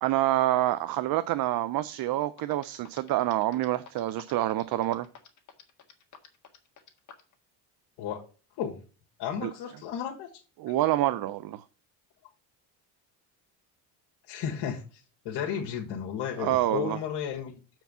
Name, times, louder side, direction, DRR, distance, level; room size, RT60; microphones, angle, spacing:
voice 1, 0.0-5.1 9.4-9.5 10.6-11.6 16.4-17.0, right 14 dB, 55° right, 0.6 m, -27 dB
sound 1, 2.0-2.1 2.4-7.3, left 7 dB, 45° left, 1.7 m, -49 dB
voice 2, 9.2-10.3 14.3-17.6, left 8 dB, 75° left, 1.6 m, -33 dB
7.1 x 4.6 x 6.8 m
cardioid pair, 110°, 41 cm